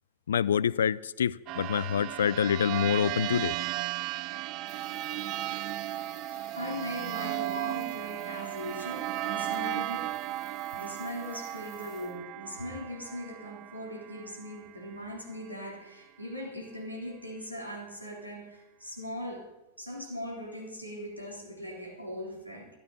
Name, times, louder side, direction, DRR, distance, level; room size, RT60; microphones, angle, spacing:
voice 1, 0.3-3.6, left 8 dB, 65° left, 0.4 m, -26 dB
sound 1, 1.5-14.7, right 15 dB, 40° right, 0.4 m, -35 dB
sound 2, 4.7-12.2, left 9 dB, 30° left, 1.9 m, -56 dB
voice 2, 6.3-10.1 10.7-19.5 19.8-22.7, equal, 90° right, 3.7 m, -40 dB
13.5 x 11.5 x 5.7 m
figure-of-eight pair, 90°, 0 cm